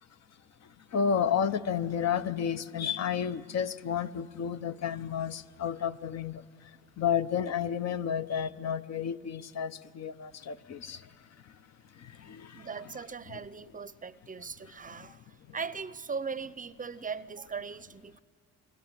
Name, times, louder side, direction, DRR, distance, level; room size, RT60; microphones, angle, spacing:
voice 1, 0.9-6.4 7.0-11.0 12.0-12.7 13.3-13.4 15.0-15.1, left 7 dB, 60° left, 0.8 m, -31 dB
voice 2, 12.5-18.2, right 5 dB, 25° right, 0.6 m, -39 dB
28.5 x 21.5 x 9.0 m
cardioid pair, 90°, 30 cm